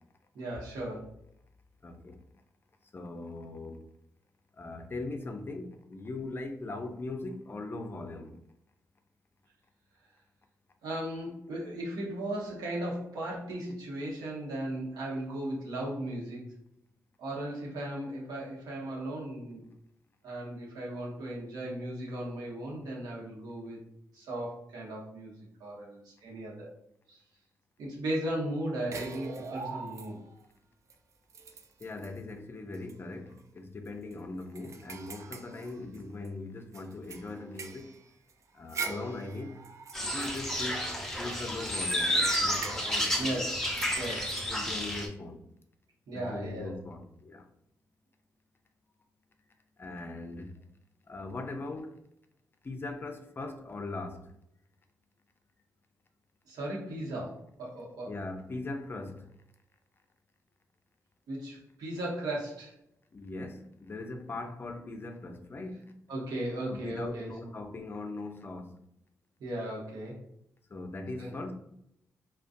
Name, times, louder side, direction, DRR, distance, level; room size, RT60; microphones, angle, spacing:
voice 1, 0.3-1.2 10.8-16.5 17.2-19.7 20.2-23.8 24.1-25.3 25.6-26.7 27.1-27.2 27.8-30.2 43.2-43.7 44.0-44.5 46.1-46.8 56.5-58.1 61.3-62.7 66.1-67.3 69.4-70.2 71.2-71.3, right 1 dB, 80° right, 0.9 m, -36 dB
voice 2, 1.8-2.2 2.9-3.8 4.6-8.4 31.8-37.9 38.5-39.6 40.0-43.3 44.5-45.4 46.1-47.5 49.8-50.5 51.1-52.0 52.6-54.3 58.1-59.3 63.1-66.0 66.6-68.8 70.7-71.5, left 2 dB, 35° left, 0.4 m, -40 dB
sound 1, 28.9-30.4 30.9-31.0 31.3-32.2 32.7-32.9 33.3-33.4 33.9-36.3 36.7-41.2 41.7-44.4, right 5 dB, 50° right, 0.3 m, -43 dB
sound 2, 39.9-45.1, equal, 5° left, 0.7 m, -31 dB
2.3 x 2.2 x 2.5 m
cardioid pair, 60°, 6 cm